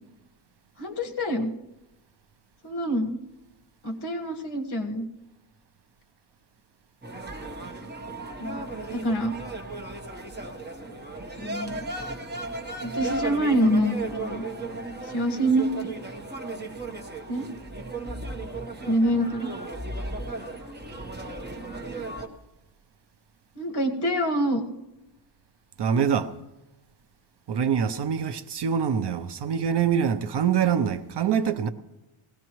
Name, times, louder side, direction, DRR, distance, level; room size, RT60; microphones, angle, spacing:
voice 1, 0.8-1.5 2.6-3.2 3.8-5.1 8.4-8.6 8.9-9.3 11.4-11.8 12.8-14.4 15.0-15.9 17.3-17.5 18.9-19.5 23.5-24.6, equal, 50° left, 1.6 m, -26 dB
sound 1, 7.0-22.3, right 2 dB, 20° right, 1.1 m, -35 dB
voice 2, 25.8-26.3 27.5-31.7, right 7 dB, 55° right, 0.7 m, -24 dB
20.5 x 16.5 x 3.1 m
wide cardioid pair, 175°, 49 cm